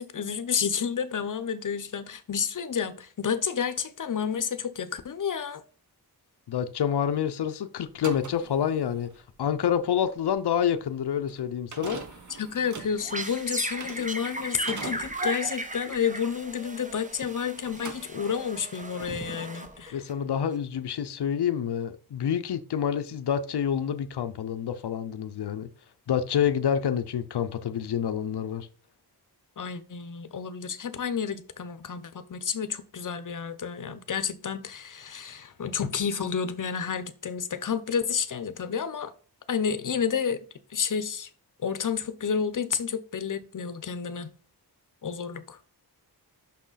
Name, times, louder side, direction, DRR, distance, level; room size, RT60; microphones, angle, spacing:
voice 1, 0.0-5.6 12.4-20.0 29.6-39.1 39.5-40.4 40.7-41.3 41.6-44.3 45.0-45.6, left 7 dB, 50° left, 0.8 m, -30 dB
voice 2, 6.5-9.1 9.4-12.0 19.9-25.7 26.1-28.7, left 8 dB, 80° left, 0.7 m, -27 dB
sound 1, 7.9-17.3 17.6-18.6, right 4 dB, 50° right, 1.1 m, -43 dB
sound 2, 12.8-20.1, right 2 dB, 20° right, 0.9 m, -36 dB
6.1 x 5.9 x 4.1 m
wide cardioid pair, 120°, 39 cm